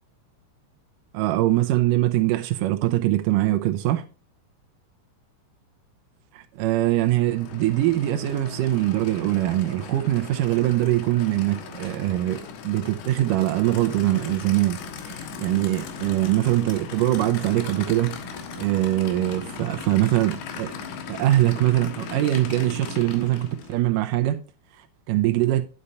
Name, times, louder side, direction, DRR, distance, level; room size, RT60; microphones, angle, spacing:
voice 1, 1.1-4.0 6.3-12.4 12.6-14.8 15.1-18.2 18.6-20.7 21.1-24.4 25.1-25.6, right 15 dB, 80° right, 2.0 m, -22 dB
Aircraft / Idling, 6.9-23.8, left 5 dB, 85° left, 3.4 m, -38 dB
9.8 x 6.7 x 4.1 m
omnidirectional pair, 4.6 m